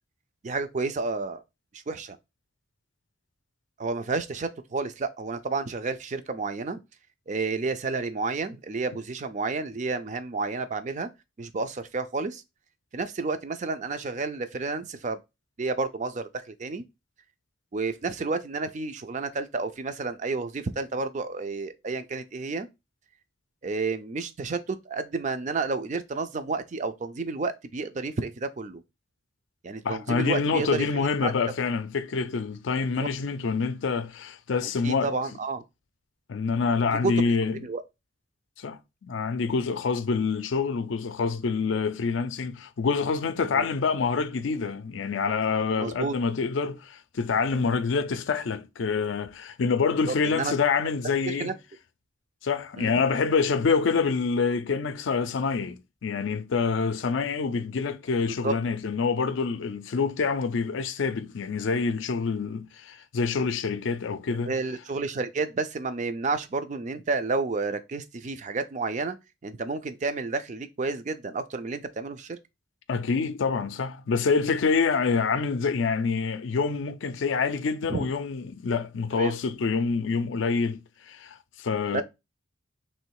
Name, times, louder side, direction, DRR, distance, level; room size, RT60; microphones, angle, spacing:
voice 1, 0.4-1.4 1.7-2.2 3.8-6.8 7.3-11.1 11.4-12.4 12.9-15.2 15.6-16.8 17.7-22.7 23.6-28.8 29.6-31.3 33.0-33.1 34.8-35.6 37.0-37.3 37.6-37.8 43.5-43.7 45.8-46.1 50.1-50.5 51.3-51.5 52.8-52.9 58.2-58.5 64.4-69.2 69.4-72.4 77.9-78.1 79.1-79.4 81.9-82.0, right 3 dB, 35° right, 0.4 m, -30 dB
voice 2, 29.8-35.1 36.3-37.6 38.6-51.5 52.4-64.5 72.9-80.8 81.1-82.0, left 5 dB, 70° left, 0.4 m, -26 dB
3.2 x 2.9 x 4.6 m
head